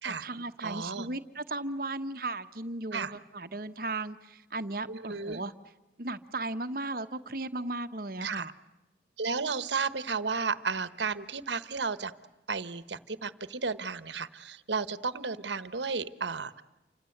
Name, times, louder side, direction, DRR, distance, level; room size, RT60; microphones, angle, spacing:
voice 1, 0.0-5.5 6.0-8.5, right 2 dB, 50° right, 10 dB, 1.1 m, -36 dB
voice 2, 0.6-1.1 2.9-3.1 4.9-5.4 8.2-8.4 9.2-12.1 12.5-16.6, right 5 dB, 80° right, 14 dB, 1.2 m, -33 dB
29.0 x 25.5 x 8.0 m, 1.0 s
head